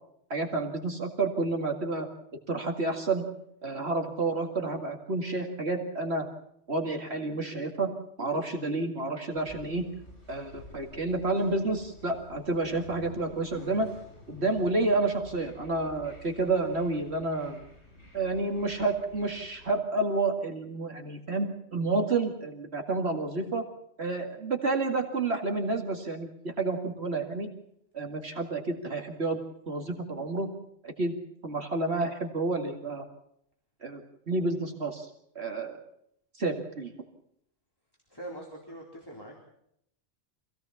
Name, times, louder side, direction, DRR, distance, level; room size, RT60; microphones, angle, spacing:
voice 1, 0.3-2.1 2.5-3.2 3.6-6.3 6.7-9.9 10.3-13.9 14.3-17.6 18.1-23.6 24.0-27.5 27.9-29.4 29.7-30.5 30.8-31.2 31.4-33.0 33.8-34.0 34.3-35.1 35.4-35.8 36.4-36.9, right 3 dB, 60° right, 3 dB, 2.4 m, -30 dB
sound 1, 9.3-19.7, left 1 dB, 65° left, 8.1 m, -51 dB
voice 2, 38.1-39.4, right 1 dB, 20° left, -2 dB, 3.9 m, -43 dB
26.0 x 17.0 x 7.1 m, 0.74 s
omnidirectional pair, 1.2 m